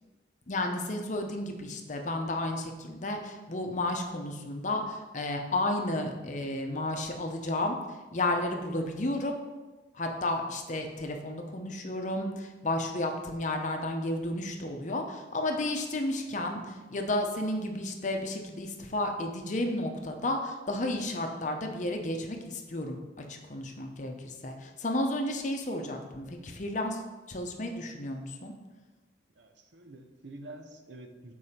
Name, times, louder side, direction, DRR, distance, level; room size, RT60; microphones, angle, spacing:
voice 1, 0.5-7.8 8.1-9.3 9.9-27.0 27.3-28.5, left 1 dB, 45° left, 4 dB, 0.7 m, -32 dB
voice 2, 29.4-31.3, right 2 dB, 80° right, 5 dB, 0.7 m, -47 dB
6.9 x 4.6 x 4.3 m, 1.2 s
head